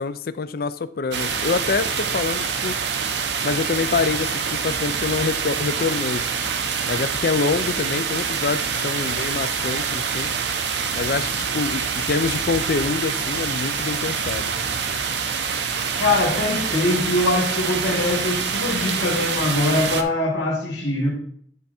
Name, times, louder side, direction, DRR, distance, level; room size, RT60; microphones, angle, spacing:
voice 1, 0.0-2.8 3.4-6.2 6.8-10.3 10.9-14.5, left 4 dB, 55° left, 0.4 m, -26 dB
sound 1, 1.1-20.0, right 6 dB, 70° right, 0.6 m, -26 dB
voice 2, 16.0-21.1, left 2 dB, 75° left, 2.4 m, -22 dB
10.5 x 3.5 x 4.2 m
head